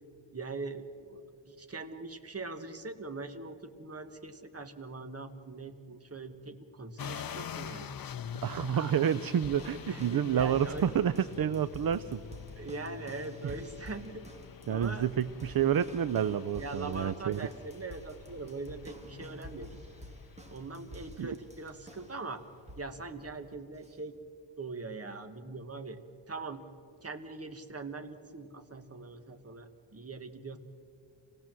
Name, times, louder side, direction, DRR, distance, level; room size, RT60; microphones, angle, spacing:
voice 1, 0.3-7.9 8.5-9.0 9.9-10.9 12.5-14.3 14.7-15.1 16.6-19.7 20.5-22.4 22.8-24.1 24.6-26.0 26.3-26.6 27.0-30.6, right 3 dB, 30° right, 8 dB, 1.3 m, -42 dB
sound 1, 7.0-23.5, left 8 dB, 50° left, 0.6 m, -47 dB
voice 2, 8.4-12.2 13.4-13.5 14.7-17.4 21.2-21.4, right 9 dB, 55° right, 16 dB, 0.5 m, -29 dB
sound 2, 9.0-22.2 22.7-23.0 23.8-23.9, equal, 15° right, 2.0 m, -49 dB
26.0 x 18.0 x 7.5 m, 2.5 s
wide cardioid pair, 135°, 44 cm